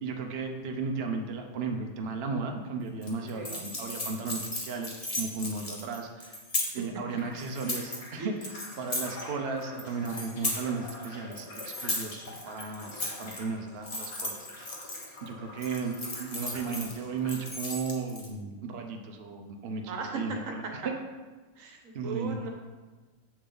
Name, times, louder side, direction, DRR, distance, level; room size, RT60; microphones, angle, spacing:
voice 1, 0.0-6.4 6.7-12.2 12.5-12.9 13.2-14.8 15.2-20.9 21.9-22.4, right 4 dB, 70° right, 3 dB, 0.5 m, -35 dB
sound 1, 3.0-6.9 7.4-8.1 8.4-9.2 9.6-11.1 11.3-13.4 13.8-15.3 15.6-16.9 17.3-18.3, left 2 dB, 25° left, 0.9 m, -36 dB
sound 2, 7.1-17.5, left 2 dB, 50° left, 2.2 m, -47 dB
voice 2, 19.9-20.2 21.6-22.5, right 5 dB, 50° right, 2 dB, 1.2 m, -37 dB
7.7 x 7.2 x 3.9 m, 1.3 s
omnidirectional pair, 2.2 m